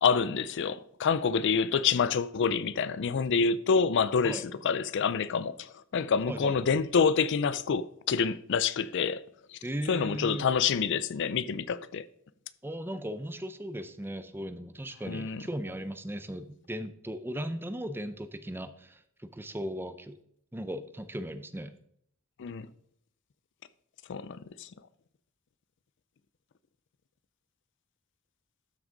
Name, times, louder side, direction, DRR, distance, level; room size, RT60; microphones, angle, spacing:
voice 1, 0.0-9.2 9.5-9.6 9.9-12.1 15.1-15.4 22.4-22.7 24.1-24.7, left 6 dB, 60° left, 0.4 m, -27 dB
voice 2, 9.6-10.5 12.6-20.2 20.5-21.7, equal, 10° right, 0.5 m, -37 dB
12.5 x 6.1 x 3.9 m
head